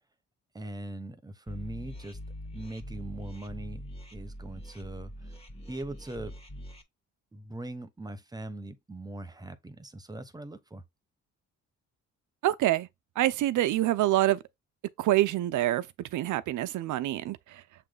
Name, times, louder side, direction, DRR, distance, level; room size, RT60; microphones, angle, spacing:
voice 1, 0.5-2.2 2.5-3.8 4.1-5.3 5.7-6.4 7.3-10.8, right 1 dB, 15° right, 1.1 m, -41 dB
sound 1, 1.5-6.8, equal, 20° left, 1.6 m, -43 dB
voice 2, 12.4-12.9 13.2-14.4 15.0-17.6, right 15 dB, 80° right, 0.7 m, -26 dB
7.4 x 3.3 x 3.9 m
cardioid pair, 90°, 30 cm